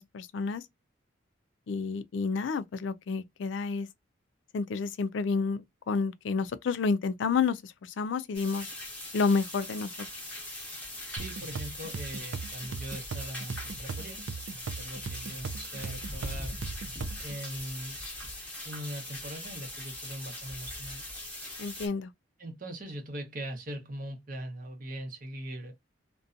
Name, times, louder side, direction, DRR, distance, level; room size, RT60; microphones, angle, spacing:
voice 1, 0.1-0.6 1.7-3.9 4.5-8.7 9.1-9.9 21.6-22.1, left 4 dB, 70° left, 0.4 m, -30 dB
sound 1, 8.3-21.9, left 1 dB, 10° left, 0.8 m, -41 dB
voice 2, 11.1-14.2 14.8-16.5 17.2-18.0 18.6-21.0 22.4-25.7, right 1 dB, 45° right, 0.8 m, -40 dB
sound 2, 11.2-17.3, right 5 dB, 85° right, 0.4 m, -39 dB
2.6 x 2.2 x 2.4 m
head